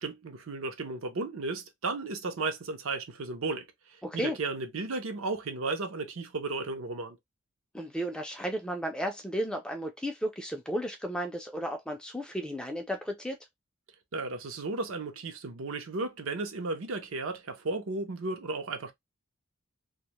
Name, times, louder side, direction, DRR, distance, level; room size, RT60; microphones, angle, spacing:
voice 1, 0.0-3.7 4.1-7.2 14.1-18.9, right 3 dB, 70° right, 0.6 m, -34 dB
voice 2, 4.0-4.4 7.7-13.4, equal, 5° left, 0.3 m, -34 dB
2.2 x 2.0 x 2.8 m
head